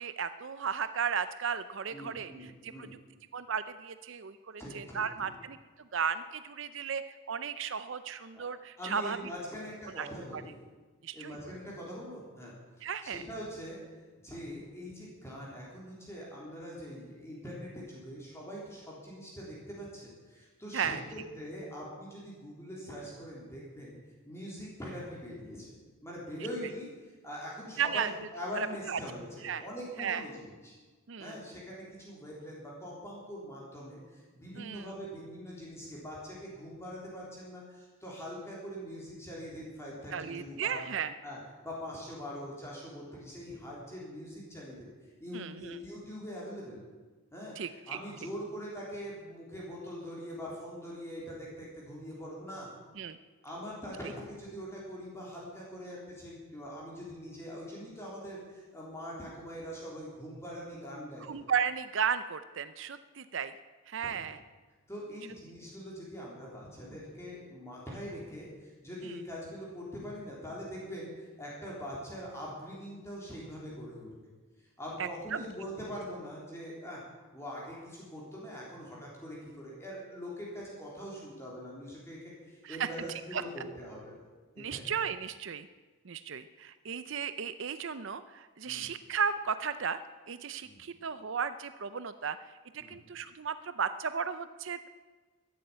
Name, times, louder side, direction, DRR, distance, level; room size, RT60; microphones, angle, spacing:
voice 1, 0.0-2.9 3.3-9.2 9.9-10.1 10.3-10.4 11.0-11.4 12.8-13.2 20.7-21.0 27.8-28.1 28.5-29.0 29.4-29.6 30.0-30.2 31.1-31.4 34.6-34.9 40.1-41.1 45.3-45.8 47.6-48.0 53.0-53.2 61.2-63.5 63.9-64.4 69.0-69.2 75.0-75.4 82.6-82.9 83.3-83.4 84.6-85.7 86.0-90.0 90.3-92.4 92.7-94.9, right 7 dB, 60° right, 12 dB, 0.6 m, -35 dB
voice 2, 1.9-2.9 4.6-5.3 8.3-8.4 8.8-10.5 11.1-13.8 14.2-24.0 24.2-25.7 26.0-30.7 31.2-40.8 41.2-44.9 45.2-46.8 47.3-52.7 53.4-61.4 64.0-64.3 64.9-74.1 74.6-77.0 77.3-84.1 84.6-84.9 88.7-88.9 90.6-90.8 92.8-93.0, equal, 10° left, -5 dB, 3.6 m, -43 dB
13.5 x 11.0 x 8.7 m, 1.3 s
head